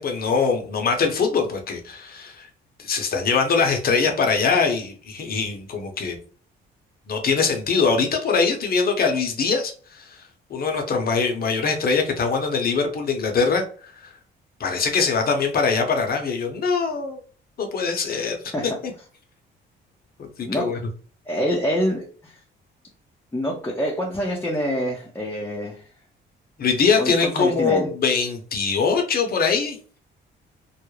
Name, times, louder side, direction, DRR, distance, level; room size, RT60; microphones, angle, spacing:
voice 1, 0.0-2.5 2.8-6.2 7.1-10.2 10.5-13.9 14.6-17.2 17.6-18.4 18.6-18.9 20.2-20.8 26.6-29.8, left 5 dB, 50° left, 4 dB, 0.7 m, -22 dB
voice 2, 21.3-22.4 23.3-25.8 27.0-27.9, equal, 10° left, -3 dB, 0.6 m, -26 dB
2.3 x 2.0 x 3.0 m, 0.42 s
cardioid pair, 90°, 20 cm